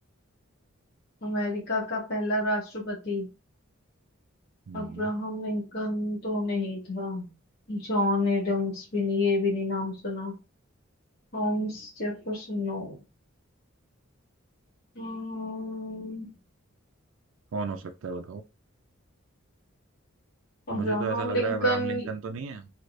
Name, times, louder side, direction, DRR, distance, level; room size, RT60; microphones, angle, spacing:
voice 1, 1.2-3.3 4.7-7.3 7.7-10.3 11.3-13.0 15.0-16.3 20.7-22.1, left 1 dB, 50° left, 1.1 m, -29 dB
voice 2, 4.7-5.1 17.5-18.4 20.7-22.7, right 5 dB, 75° right, 0.4 m, -33 dB
3.2 x 2.8 x 2.5 m
head